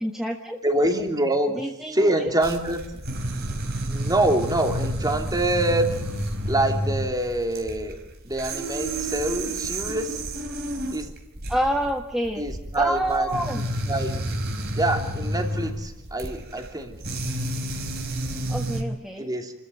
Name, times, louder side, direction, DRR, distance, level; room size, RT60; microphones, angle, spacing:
voice 1, 0.0-0.6 1.5-2.3 11.5-12.4 12.7-13.6 18.5-19.3, equal, ahead, 2 dB, 1.4 m, -27 dB
voice 2, 0.6-2.8 3.9-5.9 6.4-8.0 8.2-10.2 10.9-11.1 12.4-13.3 13.9-14.2 14.7-17.0 19.2-19.5, right 1 dB, 15° right, 4 dB, 2.9 m, -25 dB
sound 1, 2.4-18.8, right 1 dB, 45° right, 4.2 m, -30 dB
29.5 x 14.0 x 9.4 m, 0.84 s
head